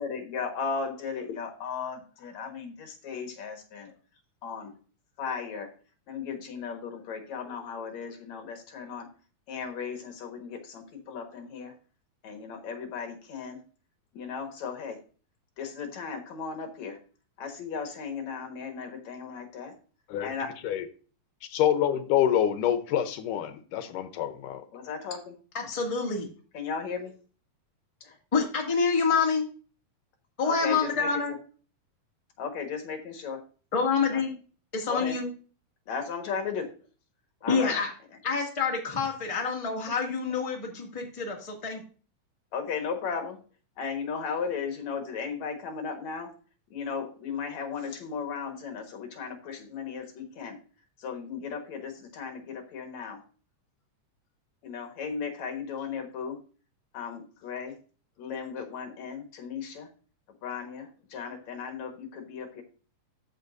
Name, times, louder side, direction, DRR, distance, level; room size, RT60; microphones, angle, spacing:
voice 1, 0.0-3.9 4.4-4.7 5.2-5.7 6.1-9.1 9.5-11.7 12.2-13.6 14.1-15.0 15.6-17.0 17.4-19.8 20.2-20.5 24.7-25.3 26.5-27.2 30.4-31.1 32.4-33.4 34.1-34.2 34.9-35.2 35.9-36.7 37.4-37.8 42.5-43.4 43.8-46.3 46.7-50.6 51.0-53.2 54.6-56.4 56.9-57.8 58.2-59.9 60.4-62.6, left 6 dB, 60° left, 2.5 m, -36 dB
voice 2, 21.5-24.6, left 10 dB, 80° left, 2.3 m, -26 dB
voice 3, 25.5-26.3 28.3-29.5 30.4-31.3 33.7-34.3 34.7-35.3 37.5-37.9 38.2-41.8, left 5 dB, 15° left, 1.5 m, -27 dB
14.0 x 5.7 x 2.6 m
omnidirectional pair, 3.8 m